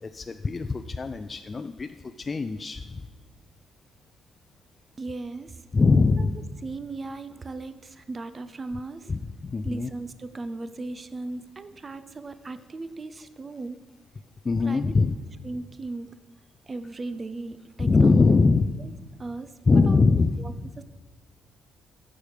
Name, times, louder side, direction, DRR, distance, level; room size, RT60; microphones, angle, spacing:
voice 1, 0.0-3.1 5.7-6.4 9.1-9.9 14.4-15.2 17.8-18.7 19.7-20.4, left 4 dB, 30° left, 8 dB, 0.4 m, -22 dB
voice 2, 5.0-5.7 6.2-6.3 6.6-9.1 9.6-13.9 14.6-14.9 15.4-16.2 16.6-18.3 19.2-19.5 19.9-20.0 20.4-20.8, right 3 dB, 30° right, 12 dB, 0.5 m, -37 dB
14.0 x 4.9 x 5.1 m, 1.4 s
cardioid pair, 90°, 0 cm